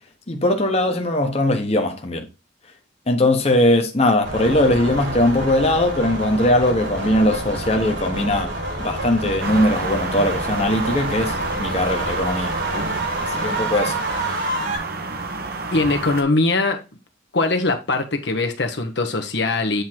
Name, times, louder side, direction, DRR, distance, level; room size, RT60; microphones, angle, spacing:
voice 1, 0.3-2.3 3.1-8.5 8.8-12.5 13.2-14.0, left 1 dB, 35° left, 1.1 m, -20 dB
sound 1, 4.2-14.8, right 1 dB, 85° right, 4.3 m, -28 dB
sound 2, 9.4-16.2, right 3 dB, 50° right, 1.0 m, -30 dB
voice 2, 15.7-16.8 17.3-19.8, left 3 dB, 65° left, 1.0 m, -21 dB
8.1 x 3.7 x 4.5 m
head